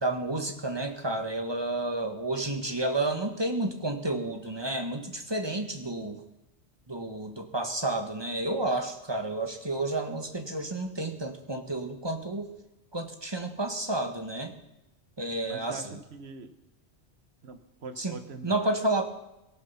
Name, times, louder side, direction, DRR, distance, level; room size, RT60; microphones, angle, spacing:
voice 1, 0.0-6.2 6.9-12.5 12.9-14.5 15.2-16.0 18.0-18.1 18.4-19.0, right 2 dB, 25° right, 5 dB, 1.6 m, -31 dB
voice 2, 15.5-16.5 17.4-18.7, right 4 dB, 70° right, 9 dB, 1.4 m, -43 dB
17.5 x 14.0 x 5.7 m, 0.92 s
omnidirectional pair, 1.1 m